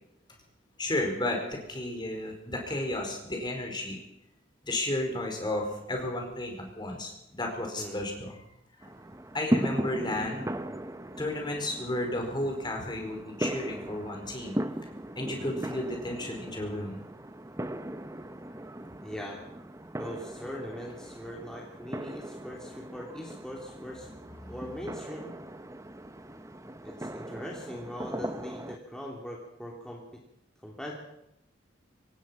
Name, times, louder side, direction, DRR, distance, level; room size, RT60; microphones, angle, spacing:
voice 1, 0.8-4.0 4.6-8.4 8.8-8.9 9.3-10.5 11.2-14.6 15.2-17.0 24.4-24.5, left 1 dB, 25° left, 2 dB, 4.8 m, -33 dB
sound 1, 8.8-28.8, right 1 dB, 15° right, 0.9 m, -38 dB
voice 2, 19.0-19.4 20.0-24.1 24.5-25.3 26.8-30.2 30.6-30.9, equal, 5° left, -2 dB, 3.1 m, -41 dB
25.5 x 18.5 x 5.8 m, 0.82 s
head